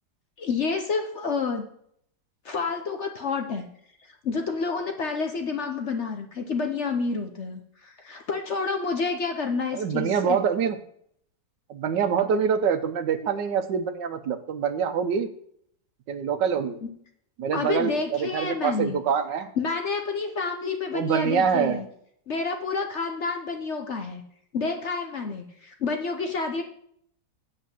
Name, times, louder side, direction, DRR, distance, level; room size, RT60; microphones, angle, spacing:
voice 1, 0.4-1.7 2.4-3.7 4.2-10.4 16.8-16.9 17.5-19.0 19.6-21.9 22.3-24.2 24.5-26.6, left 4 dB, 50° left, 4 dB, 1.0 m, -29 dB
voice 2, 9.7-10.8 11.7-15.3 16.1-16.7 17.4-19.5 20.9-21.8, right 7 dB, 80° right, 9 dB, 1.5 m, -25 dB
8.0 x 5.2 x 7.5 m, 0.67 s
omnidirectional pair, 1.9 m